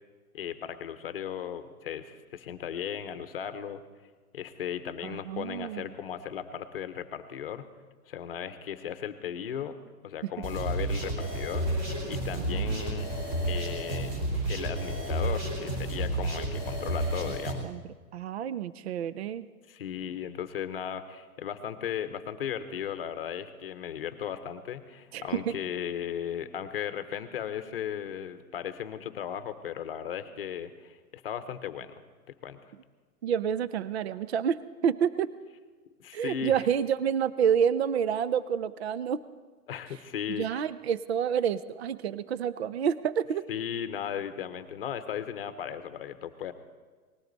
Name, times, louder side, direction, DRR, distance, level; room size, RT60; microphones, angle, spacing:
voice 1, 0.3-3.8 4.3-7.7 8.1-9.8 10.0-11.7 12.1-13.1 13.5-14.1 14.5-17.6 19.7-31.9 32.4-32.6 36.0-36.6 39.7-40.6 43.5-46.5, left 9 dB, 40° left, 11 dB, 0.9 m, -36 dB
voice 2, 5.0-5.9 12.3-12.8 17.6-17.8 18.1-19.5 25.1-25.6 33.2-35.3 36.1-39.2 40.4-43.5, right 8 dB, 50° right, 16 dB, 0.5 m, -29 dB
sound 1, 10.4-17.5, right 1 dB, 25° right, 3.3 m, -31 dB
19.5 x 16.5 x 4.0 m, 1.4 s
hypercardioid pair, 175°, 45 cm